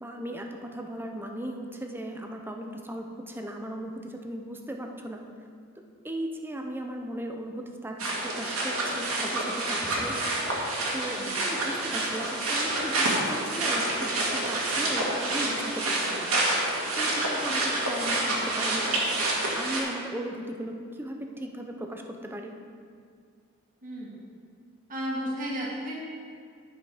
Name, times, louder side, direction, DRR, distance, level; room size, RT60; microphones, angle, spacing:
voice 1, 0.0-5.3 6.0-10.2 10.9-16.3 16.9-19.3 19.5-22.6, right 1 dB, 10° right, 3 dB, 0.7 m, -37 dB
sound 1, 8.0-19.8, right 2 dB, 70° right, 1.9 m, -28 dB
voice 2, 23.8-24.1 24.9-25.9, equal, 40° right, -4 dB, 2.0 m, -33 dB
11.0 x 5.8 x 5.0 m, 2.2 s
head